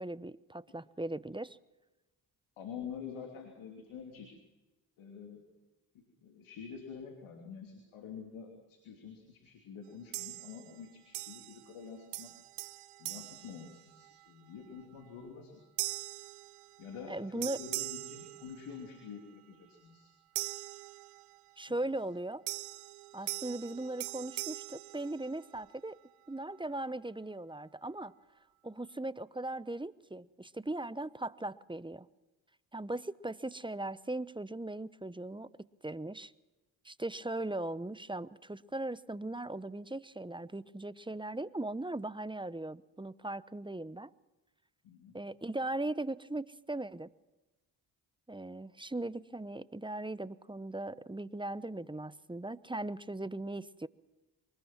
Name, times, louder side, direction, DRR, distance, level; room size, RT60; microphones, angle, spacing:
voice 1, 0.0-1.6 17.1-17.6 21.6-22.4 23.1-26.0 26.3-28.1 28.6-32.1 32.7-36.3 36.8-44.1 45.1-47.1 48.3-53.9, right 2 dB, 10° right, 17 dB, 0.9 m, -39 dB
voice 2, 2.6-4.3 5.0-5.4 5.9-12.3 13.0-15.6 16.8-20.1 21.7-21.8 44.8-45.2, left 6 dB, 80° left, 2 dB, 3.1 m, -47 dB
sound 1, 10.1-10.8 11.1-11.8 12.1-14.3 14.8-15.1 15.8-17.1 17.4-19.0 20.3-21.5 22.5-25.7, right 19 dB, 85° right, 0.7 m, -42 dB
24.0 x 20.5 x 6.0 m, 1.1 s
hypercardioid pair, 40°, 48 cm